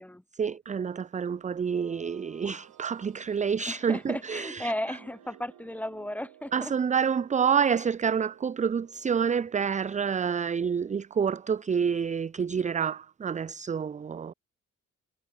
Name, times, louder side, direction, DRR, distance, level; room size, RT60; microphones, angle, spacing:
voice 1, 0.3-4.7 6.5-14.3, right 7 dB, 25° right, 0.5 m, -28 dB
sound 1, 0.9-11.7, right 12 dB, 75° right, 5.8 m, -57 dB
voice 2, 3.7-6.7, left 1 dB, 5° left, 2.8 m, -35 dB
cardioid pair, 90°, 30 cm